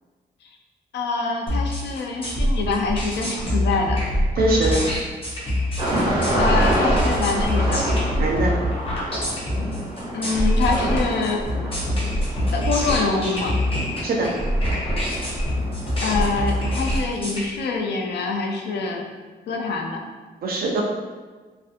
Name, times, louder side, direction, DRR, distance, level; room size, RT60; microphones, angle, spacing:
voice 1, 0.9-4.0 6.4-7.9 10.1-11.6 12.5-13.6 16.0-19.0 19.5-20.0, left 4 dB, 85° left, 2 dB, 0.4 m, -25 dB
sound 1, 1.5-17.4, equal, 35° left, 0.7 m, -24 dB
voice 2, 4.4-4.8 8.2-8.6 14.0-14.3 20.4-20.8, right 2 dB, 60° right, -1 dB, 0.4 m, -22 dB
sound 2, 5.8-16.9, right 1 dB, 25° right, 1.3 m, -28 dB
2.5 x 2.4 x 2.5 m, 1.4 s
wide cardioid pair, 135°, 17 cm